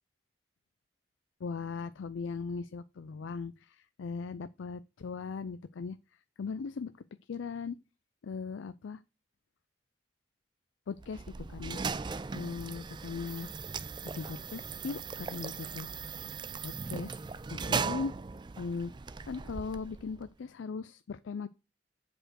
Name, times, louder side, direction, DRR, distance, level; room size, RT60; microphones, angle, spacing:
voice 1, 1.4-6.0 6.4-6.9 7.3-7.8 8.2-9.0 10.9-11.2 11.5-11.8 12.3-13.5 14.0-15.9 16.6-17.2 17.5-18.1 18.6-18.9 19.3-21.5, left 5 dB, 90° left, 0.4 m, -38 dB
sound 1, 11.0-20.3, right 5 dB, 25° right, 0.3 m, -38 dB
7.8 x 4.4 x 6.2 m
head